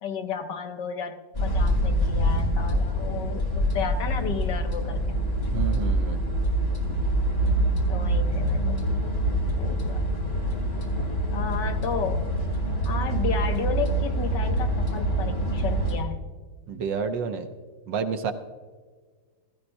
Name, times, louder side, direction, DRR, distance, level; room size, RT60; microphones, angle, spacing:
voice 1, 0.0-5.2 7.3-8.8 9.3-10.0 11.3-12.3 12.8-16.2, left 6 dB, 65° left, 6 dB, 1.3 m, -33 dB
sound 1, 1.3-16.0, right 1 dB, 30° left, 2.1 m, -25 dB
voice 2, 5.5-6.2 16.7-17.5 17.9-18.3, right 6 dB, 70° right, 7 dB, 1.4 m, -29 dB
16.0 x 15.0 x 2.6 m, 1.5 s
omnidirectional pair, 2.3 m